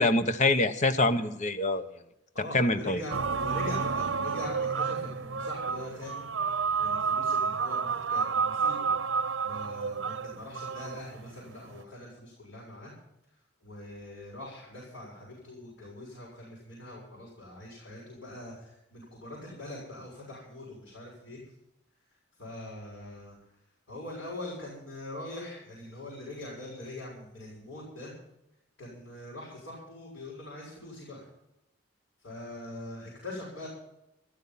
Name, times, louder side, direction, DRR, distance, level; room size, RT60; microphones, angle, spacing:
voice 1, 0.0-1.8 2.5-3.0, left 2 dB, 40° left, 10 dB, 1.0 m, -25 dB
voice 2, 2.3-8.9 9.4-12.9 13.6-21.4 22.4-23.3 23.9-28.1 28.8-31.3 32.2-33.7, left 1 dB, 70° left, -6 dB, 7.3 m, -43 dB
sound 1, 3.1-11.8, right 5 dB, 90° right, 0.7 m, -30 dB
14.0 x 13.5 x 5.6 m, 0.86 s
head